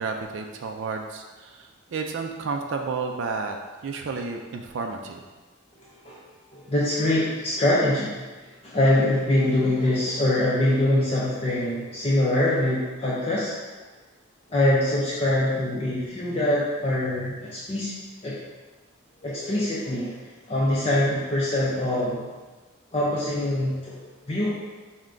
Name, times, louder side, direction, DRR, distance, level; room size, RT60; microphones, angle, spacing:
voice 1, 0.0-3.6 3.8-5.2, right 4 dB, 60° right, 3 dB, 0.3 m, -31 dB
voice 2, 5.8-6.2 6.5-8.2 8.4-13.5 14.5-17.9 18.2-18.3 19.2-20.1 20.5-22.3 22.9-24.0 24.3-24.5, left 1 dB, 30° left, -7 dB, 0.5 m, -24 dB
4.6 x 2.1 x 3.7 m, 1.3 s
head